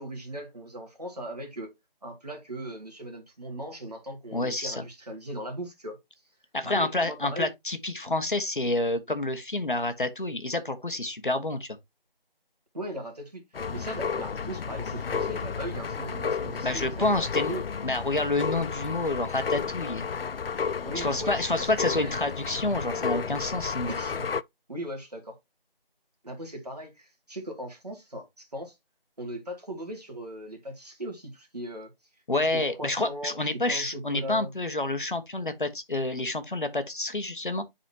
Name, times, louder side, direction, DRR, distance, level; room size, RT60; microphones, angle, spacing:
voice 1, 0.0-1.7 2.0-6.0 6.6-7.5 12.7-13.4 13.7-17.6 20.8-22.1 23.9-24.3 24.7-25.4 26.2-28.8 29.2-31.9 32.4-34.5, right 1 dB, 40° right, 2.2 m, -38 dB
voice 2, 4.3-4.8 6.5-11.8 16.6-17.5 17.8-20.1 20.9-23.9 32.3-37.6, left 2 dB, 55° left, 1.2 m, -28 dB
sound 1, 13.5-24.4, left 6 dB, 75° left, 0.5 m, -32 dB
10.5 x 4.1 x 2.7 m
figure-of-eight pair, 175°, 29 cm